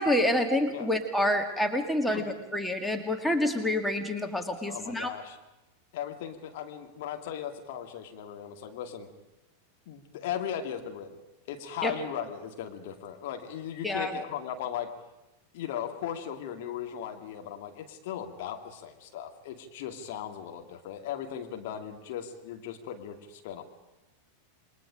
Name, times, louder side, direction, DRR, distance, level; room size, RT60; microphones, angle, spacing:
voice 1, 0.0-5.1 11.8-11.9 13.8-14.2, left 1 dB, 5° left, 5 dB, 2.1 m, -27 dB
voice 2, 4.7-5.4 5.9-9.1 9.9-11.2 11.5-14.9 15.5-23.6, left 9 dB, 50° left, 4 dB, 2.3 m, -37 dB
28.0 x 22.5 x 5.1 m, 1.0 s
figure-of-eight pair, 90°, 0 cm